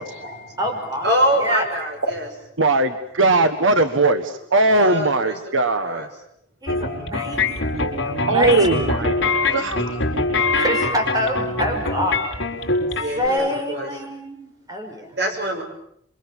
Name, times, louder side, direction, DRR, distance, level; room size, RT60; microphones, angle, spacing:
voice 1, 0.0-0.6 0.9-2.3 4.7-5.4 5.8-6.1 7.0-7.1 7.5-7.6 9.4-9.9 13.0-13.9 15.2-15.6, equal, 60° right, 4 dB, 6.8 m, -25 dB
voice 2, 0.6-1.1 1.4-1.6 6.6-8.7 10.5-12.2 13.2-15.1, equal, 20° right, 4 dB, 5.4 m, -26 dB
voice 3, 2.6-6.0 8.3-9.1 9.5-9.9, right 2 dB, 85° right, 9 dB, 1.5 m, -19 dB
sound 1, 6.7-13.3, left 3 dB, 65° left, 5.0 m, -23 dB
27.5 x 24.5 x 7.4 m, 0.71 s
head